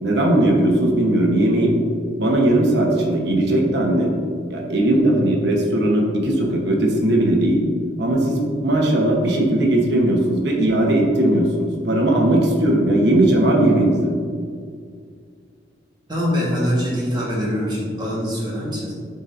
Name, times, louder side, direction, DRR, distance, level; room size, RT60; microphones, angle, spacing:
voice 1, 0.0-1.8 2.2-4.1 4.5-7.6 8.0-14.1, right 1 dB, 65° right, 0 dB, 1.0 m, -18 dB
voice 2, 16.1-18.9, equal, 25° right, -5 dB, 1.4 m, -23 dB
9.7 x 4.0 x 2.6 m, 2.1 s
head